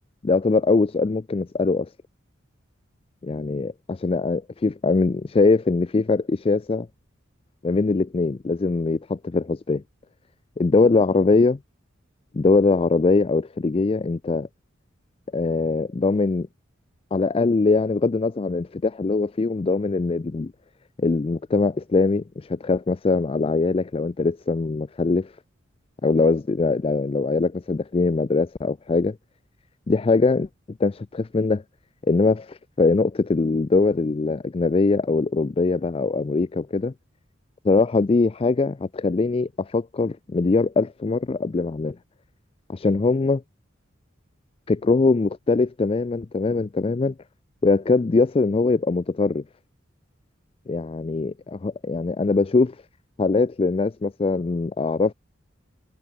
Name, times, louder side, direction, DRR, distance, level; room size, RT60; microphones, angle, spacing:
voice 1, 0.2-1.9 3.3-6.9 7.6-9.8 10.6-11.6 12.3-14.5 15.3-16.5 17.1-20.5 21.0-25.3 26.0-29.2 29.9-30.5 30.8-31.6 32.1-36.9 37.6-42.0 42.7-43.4 44.7-47.1 47.6-49.4 50.7-52.8 53.2-55.1, left 3 dB, 30° left, 0.4 m, -22 dB
head